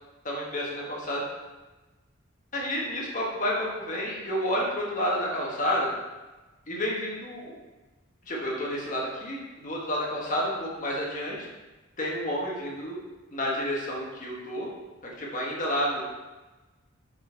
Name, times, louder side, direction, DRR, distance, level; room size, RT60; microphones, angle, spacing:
voice 1, 0.2-1.2 2.5-5.9 6.7-7.5 8.3-11.4 12.0-13.0 13.3-14.7 15.2-16.0, equal, 40° left, -3 dB, 1.4 m, -30 dB
6.0 x 4.3 x 4.5 m, 1.2 s
head